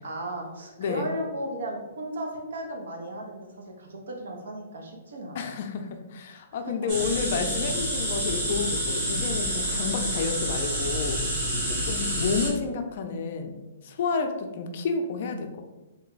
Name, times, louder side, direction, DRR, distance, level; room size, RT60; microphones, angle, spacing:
voice 1, 0.0-5.5 6.5-6.7 12.0-12.1 14.4-14.6, right 1 dB, 75° right, 1 dB, 0.8 m, -36 dB
voice 2, 5.3-11.2 11.7-13.6 13.8-15.6, left 5 dB, 45° left, 5 dB, 0.4 m, -30 dB
sound 1, 6.9-12.5, right 1 dB, 30° right, 1.2 m, -28 dB
3.2 x 2.2 x 3.8 m, 1.1 s
hypercardioid pair, 165°, 0 cm